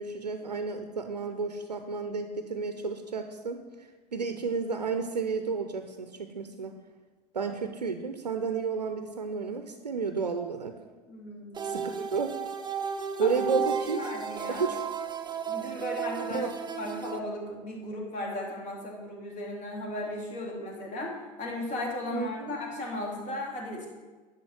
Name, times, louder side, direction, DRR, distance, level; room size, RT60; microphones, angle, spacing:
voice 1, 0.0-6.7 7.3-10.7 11.6-12.4 13.2-14.0 14.5-14.8 16.3-16.5 22.1-22.6, right 5 dB, 90° right, 7 dB, 0.6 m, -32 dB
voice 2, 11.1-11.8 13.2-13.6 13.9-14.6 15.5-16.5 16.8-23.9, left 1 dB, 35° left, -2 dB, 2.9 m, -36 dB
sound 1, 11.5-17.2, right 7 dB, 20° right, 0.7 m, -33 dB
11.0 x 4.2 x 7.2 m, 1.3 s
figure-of-eight pair, 80°, 20 cm